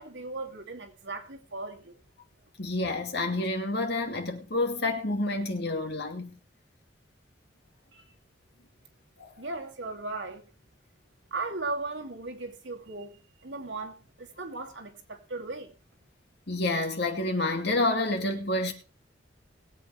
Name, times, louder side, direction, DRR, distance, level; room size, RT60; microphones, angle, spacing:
voice 1, 0.0-2.0 7.9-8.0 9.4-10.4 11.3-15.7, right 3 dB, 80° right, 2.6 m, -37 dB
voice 2, 2.6-6.4 9.2-9.4 16.5-18.7, left 2 dB, 60° left, 2.6 m, -29 dB
21.0 x 8.3 x 3.3 m
head